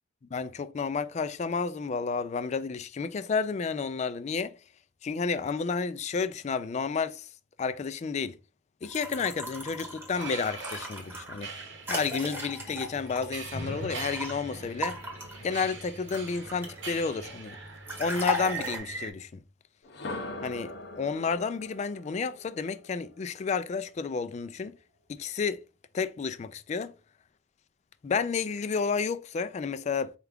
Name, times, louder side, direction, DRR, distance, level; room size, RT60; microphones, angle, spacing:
voice 1, 0.3-4.5 5.0-7.3 7.6-8.4 8.8-15.0 15.4-17.6 18.0-19.4 20.4-24.8 25.1-25.6 25.9-26.9 28.0-30.1, left 5 dB, 35° left, 0.3 m, -31 dB
sound 1, 8.8-14.3 14.8-16.9 17.9-18.8, equal, 10° right, 0.9 m, -37 dB
sound 2, 9.0-19.1, right 3 dB, 70° right, 0.8 m, -41 dB
sound 3, 19.8-23.8, left 2 dB, 60° left, 0.7 m, -42 dB
4.4 x 2.3 x 3.5 m
head